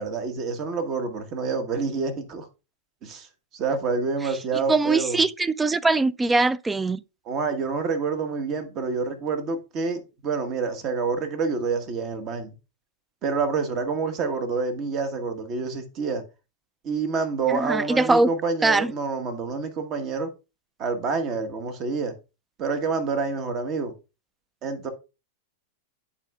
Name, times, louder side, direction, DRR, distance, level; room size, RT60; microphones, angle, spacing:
voice 1, 0.0-2.5 3.0-3.3 3.5-5.2 7.3-12.5 13.2-16.2 16.8-20.3 20.8-22.1 22.6-23.9 24.6-24.9, right 4 dB, 40° right, 1.2 m, -27 dB
voice 2, 4.7-7.0 17.5-18.3 18.6-18.9, right 3 dB, 10° right, 0.3 m, -21 dB
10.5 x 4.2 x 2.3 m
hypercardioid pair, 100°, 0 cm